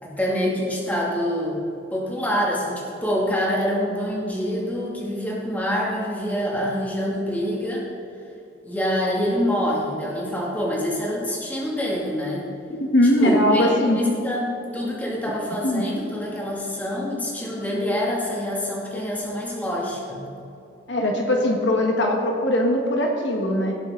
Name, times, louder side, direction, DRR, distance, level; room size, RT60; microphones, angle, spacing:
voice 1, 0.0-1.6 1.9-7.9 8.6-12.4 13.2-20.3, equal, 10° left, -5 dB, 2.4 m, -26 dB
voice 2, 12.7-14.0 15.6-15.9 20.9-23.7, left 1 dB, 65° left, 0 dB, 1.4 m, -20 dB
18.0 x 7.9 x 3.8 m, 2.9 s
head